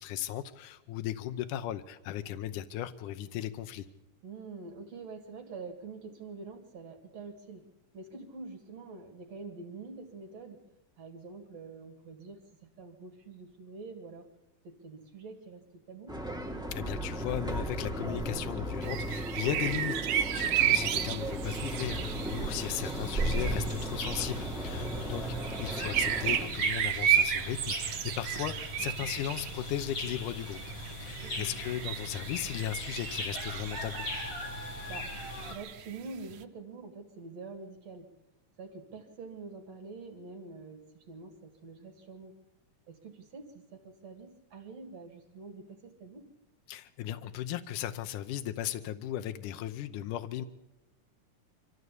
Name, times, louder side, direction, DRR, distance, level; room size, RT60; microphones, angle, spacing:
voice 1, 0.0-3.9 16.7-25.3 25.6-30.6 31.0-34.1 46.7-50.5, left 12 dB, 80° left, 8 dB, 2.4 m, -36 dB
voice 2, 4.2-7.7 7.9-10.6 11.0-14.3 14.6-16.2 24.7-25.1 28.8-29.1 31.2-31.5 34.9-38.1 38.6-42.4 42.9-46.3, right 4 dB, 55° right, 5 dB, 3.0 m, -46 dB
sound 1, 16.1-26.5, right 1 dB, ahead, 2.0 m, -35 dB
sound 2, 18.8-34.4 34.8-36.4, right 10 dB, 75° right, 2.5 m, -33 dB
sound 3, 21.4-35.5, left 1 dB, 45° left, 4.5 m, -40 dB
25.0 x 14.5 x 8.3 m, 0.98 s
omnidirectional pair, 3.6 m